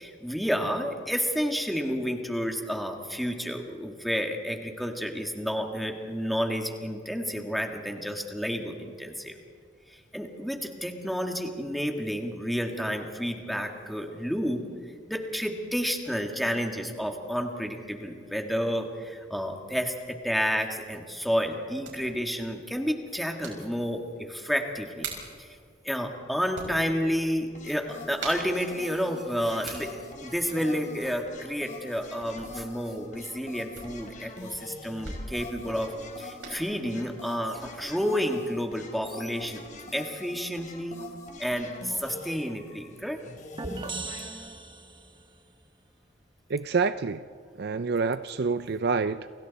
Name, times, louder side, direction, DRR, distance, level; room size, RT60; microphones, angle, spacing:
voice 1, 0.0-9.4 9.9-14.6 15.1-25.1 25.4-25.5 25.8-39.6 39.9-41.0 41.4-43.2, equal, ahead, 3 dB, 2.1 m, -30 dB
sound 1, 21.7-36.6, right 3 dB, 80° right, 6.3 m, -46 dB
sound 2, 27.5-44.3, left 2 dB, 45° left, 3.6 m, -45 dB
sound 3, 43.6-45.3, right 3 dB, 25° right, 1.1 m, -37 dB
voice 2, 46.5-47.2 47.6-49.3, right 4 dB, 60° right, 12 dB, 0.5 m, -27 dB
29.5 x 28.0 x 4.2 m, 2.1 s
head